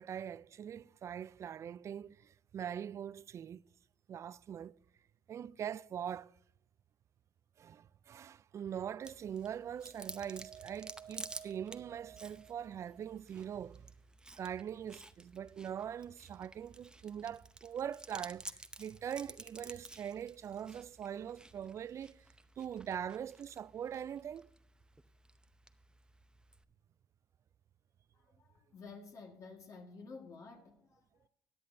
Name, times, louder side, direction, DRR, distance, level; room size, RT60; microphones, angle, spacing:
voice 1, 0.0-3.6 4.1-4.7 5.3-6.3 7.6-13.9 14.4-22.2 22.6-24.5, right 9 dB, 45° right, 0.3 m, -42 dB
Chewing mastication, 9.0-26.6, right 2 dB, 10° right, 0.7 m, -53 dB
voice 2, 28.1-31.3, left 4 dB, 50° left, 1.7 m, -52 dB
16.5 x 9.7 x 2.7 m
supercardioid pair, 85°, 7 cm